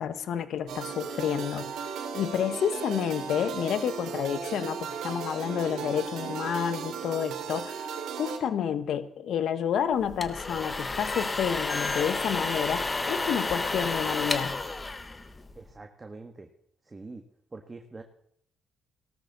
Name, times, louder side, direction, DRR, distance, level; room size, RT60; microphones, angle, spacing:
voice 1, 0.0-1.7 2.1-14.6, left 8 dB, 70° left, 12 dB, 1.3 m, -30 dB
sound 1, 0.7-8.4, right 7 dB, 80° right, 3.0 m, -36 dB
sound 2, 10.0-15.7, left 3 dB, 25° left, 1.5 m, -31 dB
voice 2, 15.5-16.5 16.8-17.2 17.5-18.0, right 3 dB, 25° right, 5 dB, 1.6 m, -44 dB
17.5 x 13.5 x 4.1 m, 0.67 s
cardioid pair, 90°, 0 cm